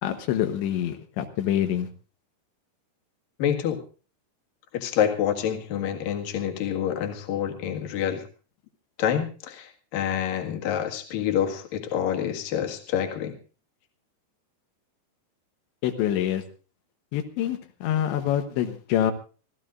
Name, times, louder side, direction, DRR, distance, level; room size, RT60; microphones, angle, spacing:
voice 1, 0.0-1.9 15.8-16.4 17.1-19.1, left 11 dB, 85° left, 6 dB, 3.4 m, -26 dB
voice 2, 3.4-3.8 4.7-8.2 9.0-13.3, left 9 dB, 60° left, 3 dB, 3.2 m, -27 dB
27.5 x 14.5 x 2.5 m, 0.37 s
omnidirectional pair, 5.1 m